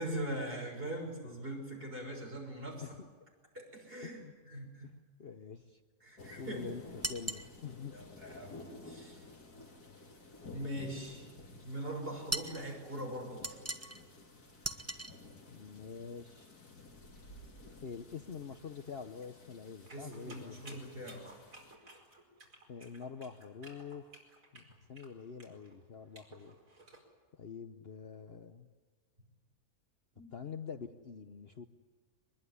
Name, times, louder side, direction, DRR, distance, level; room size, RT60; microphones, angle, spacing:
voice 1, 0.0-3.0 3.5-4.9 6.0-6.7 7.9-9.2 10.5-11.3 11.6-13.8 19.9-21.3 30.1-30.3, right 1 dB, 35° right, 1 dB, 6.6 m, -42 dB
voice 2, 4.0-4.3 5.2-5.8 6.4-6.8 7.1-7.9 15.5-16.5 17.8-20.8 22.7-24.1 24.5-26.5 27.3-28.7 30.3-31.6, left 6 dB, 45° left, 8 dB, 1.0 m, -46 dB
sound 1, 6.2-21.8, left 2 dB, 85° left, 3.3 m, -54 dB
sound 2, 7.0-7.5 12.3-12.6 13.4-14.0 14.6-15.1, right 2 dB, 10° right, 1.1 m, -38 dB
sound 3, 19.9-27.0, right 2 dB, 60° right, 5.2 m, -56 dB
23.5 x 21.0 x 9.9 m, 1.5 s
omnidirectional pair, 1.6 m